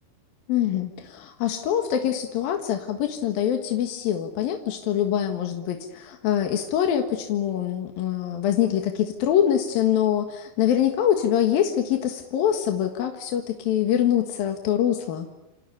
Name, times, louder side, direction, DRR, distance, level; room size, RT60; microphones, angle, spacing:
voice 1, 0.5-15.3, left 10 dB, 80° left, 4 dB, 3.5 m, -24 dB
28.5 x 28.5 x 7.0 m, 0.96 s
omnidirectional pair, 4.1 m